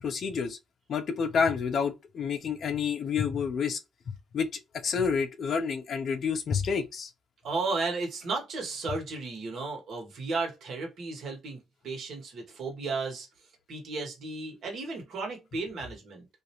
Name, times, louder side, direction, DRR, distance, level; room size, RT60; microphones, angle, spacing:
voice 1, 0.0-0.6 0.9-3.8 4.1-7.1, left 6 dB, 60° left, 0.4 m, -29 dB
voice 2, 7.4-13.3 13.7-16.3, right 3 dB, 65° right, 1.0 m, -34 dB
2.4 x 2.0 x 2.8 m
cardioid pair, 90°, 0 cm